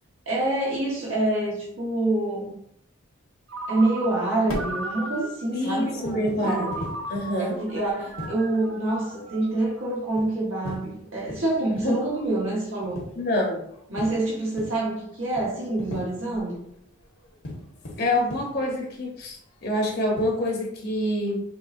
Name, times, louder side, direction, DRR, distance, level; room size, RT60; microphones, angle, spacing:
voice 1, 0.3-2.5 3.7-6.7 7.6-13.0 13.9-16.6, right 2 dB, 70° right, -5 dB, 1.3 m, -26 dB
Ringtone, 3.5-5.6 6.4-9.8, right 2 dB, 55° right, 0.6 m, -37 dB
sound 1, 4.4-20.5, left 1 dB, 80° left, 1.4 m, -41 dB
voice 2, 5.5-7.6 11.7-11.9 13.1-13.6 18.0-21.4, left 1 dB, 45° left, 0 dB, 0.9 m, -26 dB
5.5 x 3.2 x 2.6 m, 0.69 s
head